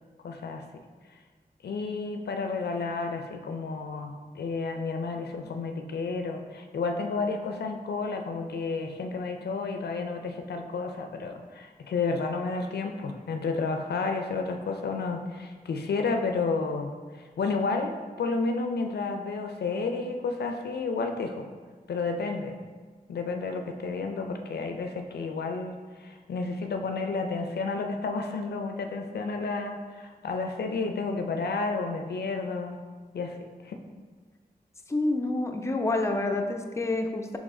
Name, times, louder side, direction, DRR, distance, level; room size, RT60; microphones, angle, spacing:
voice 1, 0.2-0.6 1.6-17.9 18.2-21.5 21.9-22.6 23.1-32.8 33.1-33.4 33.6-33.8, left 4 dB, 90° left, 5 dB, 0.4 m, -31 dB
voice 2, 34.9-37.4, left 2 dB, 15° left, 4 dB, 0.4 m, -28 dB
3.9 x 3.0 x 3.7 m, 1.5 s
cardioid pair, 50°, 17 cm